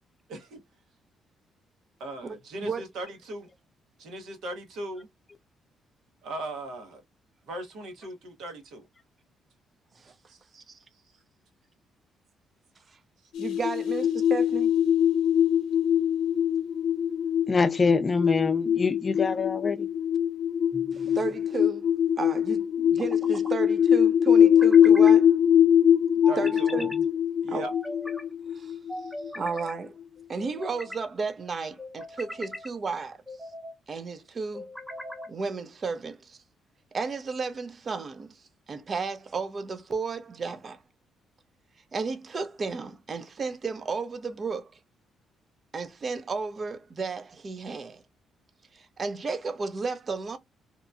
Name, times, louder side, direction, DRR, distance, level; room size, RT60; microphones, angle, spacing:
voice 1, 0.3-0.6 2.0-3.5 4.0-5.1 6.2-7.0 7.5-8.8 10.3-10.4 26.3-26.7 27.4-27.7 28.9-29.1, right 2 dB, 80° right, 1.0 m, -38 dB
sound 1, 13.3-29.6, left 9 dB, 85° left, 0.5 m, -22 dB
voice 2, 13.4-14.8 20.9-21.9 22.2-25.3 26.4-26.9 27.5-27.7 28.5-28.8 29.3-29.9 30.3-33.2 33.9-34.7 35.3-36.4 36.9-40.8 41.9-44.8 45.7-48.0 48.7-50.4, right 4 dB, 40° right, 0.5 m, -33 dB
voice 3, 17.5-19.9, left 4 dB, 35° left, 0.4 m, -25 dB
sound 2, 20.7-21.4 22.8-23.5 24.4-25.2 26.2-27.0 27.6-28.2 28.9-29.7 30.4-31.0 31.8-32.7 33.3-33.8 34.5-35.3, left 1 dB, ahead, 0.7 m, -40 dB
2.9 x 2.1 x 2.4 m
cardioid pair, 90°, 0 cm